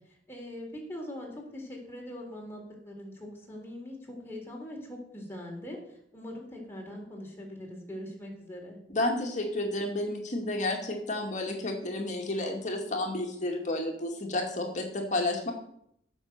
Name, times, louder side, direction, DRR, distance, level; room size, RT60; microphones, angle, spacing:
voice 1, 0.1-8.8, left 1 dB, 15° left, -1 dB, 3.7 m, -42 dB
voice 2, 8.9-15.5, left 2 dB, 45° left, 1 dB, 2.2 m, -31 dB
16.5 x 6.5 x 6.7 m, 0.72 s
head